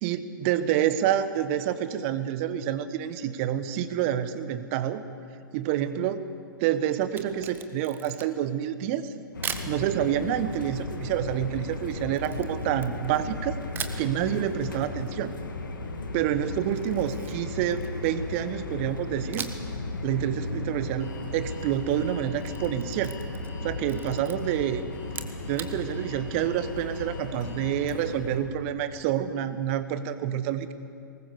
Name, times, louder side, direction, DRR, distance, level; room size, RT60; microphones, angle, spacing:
voice 1, 0.0-5.0 5.5-6.3 6.6-9.1 9.7-13.6 14.0-15.3 16.1-19.5 20.0-23.2 23.6-24.8 25.5-30.7, right 10 dB, 40° right, 12 dB, 1.4 m, -28 dB
Camera, 7.0-8.5 9.4-9.7 12.2-13.3 13.7-14.1 16.7-18.2 19.3-19.8 20.1-20.2 22.2-23.6 23.8-24.4 25.0-25.7, right 7 dB, 20° right, 1.3 m, -39 dB
sound 1, 9.3-28.4, left 2 dB, 70° left, 2.4 m, -36 dB
Alarm, 21.0-27.9, left 5 dB, 40° left, 4.7 m, -50 dB
23.5 x 20.0 x 6.9 m, 2.4 s
figure-of-eight pair, 110°, 11 cm